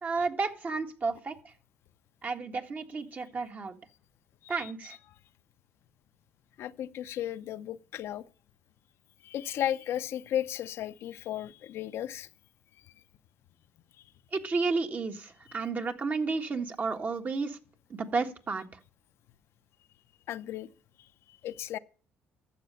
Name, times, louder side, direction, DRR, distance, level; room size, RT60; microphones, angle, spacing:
voice 1, 0.0-1.5 2.2-3.8 4.5-5.0 14.3-17.6 17.9-18.7, right 4 dB, 40° right, 1.6 m, -32 dB
voice 2, 6.6-8.3 9.2-12.3 20.3-20.7 21.3-21.8, left 11 dB, 70° left, 0.6 m, -35 dB
13.0 x 7.4 x 5.6 m
supercardioid pair, 65°, 4 cm